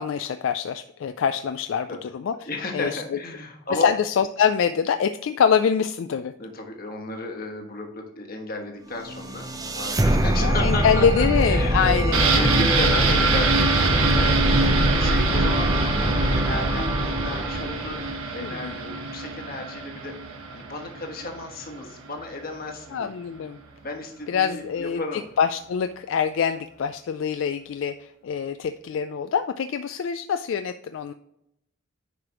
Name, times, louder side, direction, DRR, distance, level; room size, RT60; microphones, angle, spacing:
voice 1, 0.0-3.2 3.7-6.3 10.4-12.4 18.4-18.8 22.9-23.6 24.3-25.0 25.4-31.1, left 7 dB, 70° left, 9 dB, 0.3 m, -25 dB
voice 2, 2.5-3.9 6.4-9.5 9.8-11.9 12.3-15.9 16.2-18.0 18.3-23.1 23.8-25.3, left 2 dB, 45° left, 3 dB, 1.3 m, -33 dB
sound 1, 9.0-18.1, right 1 dB, 15° right, 0.5 m, -23 dB
sound 2, 12.1-21.7 22.1-22.2, right 3 dB, 90° right, 1.1 m, -25 dB
9.4 x 5.0 x 3.0 m, 0.80 s
head